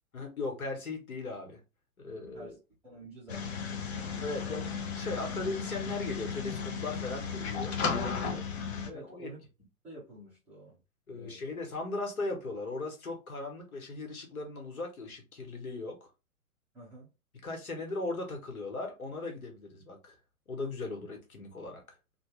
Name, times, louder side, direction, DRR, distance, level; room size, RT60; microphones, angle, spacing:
voice 1, 0.1-1.6 2.0-2.5 4.2-8.1 8.9-9.3 11.1-16.0 17.4-20.1 20.5-21.8, left 3 dB, 75° left, 1.4 m, -38 dB
voice 2, 2.8-4.7 7.7-8.4 8.8-9.5 9.8-10.8 11.1-11.5 16.7-17.1, right 1 dB, 5° right, 0.4 m, -48 dB
sound 1, 3.3-8.9, left 6 dB, 45° left, 0.7 m, -35 dB
3.0 x 2.3 x 3.1 m
figure-of-eight pair, 120°, 43 cm